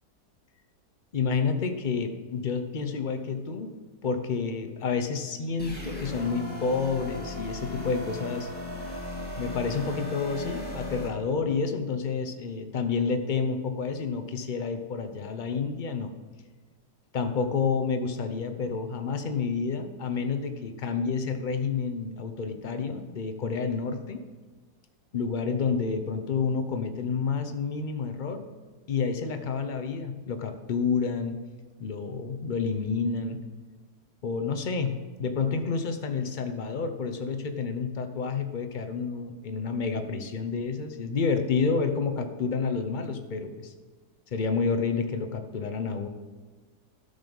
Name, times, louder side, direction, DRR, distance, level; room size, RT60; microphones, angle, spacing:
voice 1, 1.1-3.7 4.0-8.5 9.4-16.1 17.1-24.2 25.1-28.4 28.9-31.4 31.8-33.4 34.2-43.7 44.3-46.1, left 5 dB, 50° left, 6 dB, 0.5 m, -29 dB
sound 1, 5.6-11.1, left 2 dB, 5° left, 1.5 m, -36 dB
12.5 x 5.5 x 5.3 m, 1.3 s
omnidirectional pair, 1.7 m